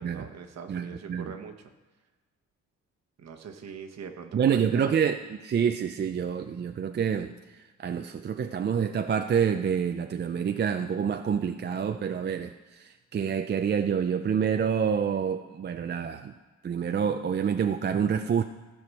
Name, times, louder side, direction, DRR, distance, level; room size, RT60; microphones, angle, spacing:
voice 1, 0.0-1.5 3.2-4.9, right 6 dB, 60° right, 5 dB, 1.2 m, -42 dB
voice 2, 0.7-1.3 4.3-16.3 16.6-18.4, right 7 dB, 35° right, 7 dB, 0.5 m, -27 dB
14.5 x 5.0 x 6.3 m, 1.3 s
cardioid pair, 90°, 30 cm